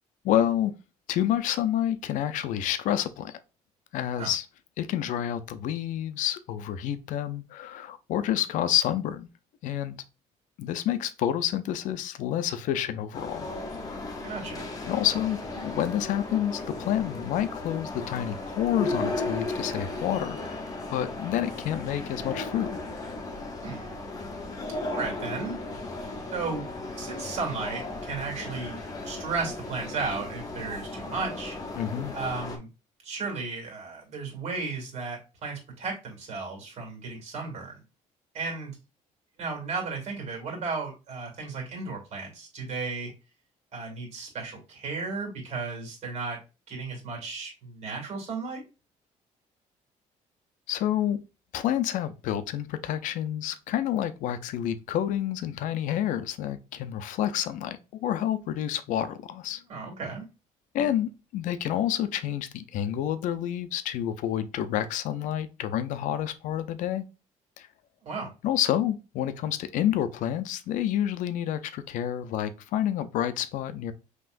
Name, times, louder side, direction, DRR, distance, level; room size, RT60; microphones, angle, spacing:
voice 1, 0.2-0.7 1.1-3.3 3.9-4.5 4.8-9.3 9.6-10.0 10.6-13.5 14.9-20.6 20.9-22.8 31.8-32.1 50.7-51.2 51.5-59.6 60.7-67.1 67.6-67.7 68.4-73.9, left 11 dB, 65° left, 0.5 m, -29 dB
sound 1, 13.1-32.6, left 2 dB, 25° left, 0.8 m, -36 dB
voice 2, 14.2-14.7 23.6-23.9 24.9-25.6 26.3-26.7 27.0-28.8 29.0-31.6 32.1-32.7 33.0-37.8 38.3-38.8 39.4-43.1 43.7-46.4 46.7-48.6 59.7-60.2 68.0-68.3, right 4 dB, 50° right, 2.2 m, -34 dB
5.7 x 3.0 x 2.5 m
cardioid pair, 165°, 14 cm